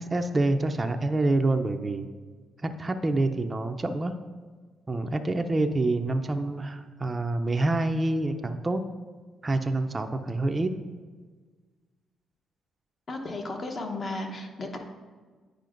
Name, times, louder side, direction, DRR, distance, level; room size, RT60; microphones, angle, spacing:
voice 1, 0.0-2.1 2.6-4.1 4.9-8.8 9.4-10.7, right 2 dB, 25° right, 6 dB, 0.4 m, -27 dB
voice 2, 13.1-14.8, left 2 dB, 40° left, 4 dB, 0.8 m, -34 dB
9.1 x 5.0 x 2.5 m, 1.5 s
cardioid pair, 90°, 0 cm